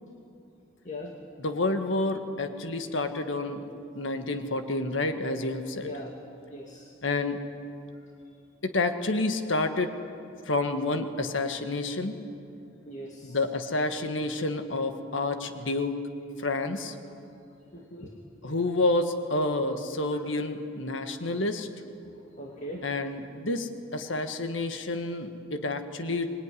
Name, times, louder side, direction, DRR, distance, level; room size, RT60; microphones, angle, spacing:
voice 1, 0.8-1.2 5.8-6.1 6.5-6.9 7.9-8.3 12.8-13.4 17.7-18.1 22.0-22.9, left 1 dB, 40° left, 0 dB, 2.3 m, -41 dB
voice 2, 1.4-3.6 3.9-5.9 7.0-7.4 8.6-9.9 10.4-12.2 13.2-16.0 16.4-16.9 18.4-21.7 22.8-26.3, left 2 dB, 85° left, 7 dB, 1.7 m, -29 dB
25.5 x 21.5 x 9.9 m, 2.7 s
head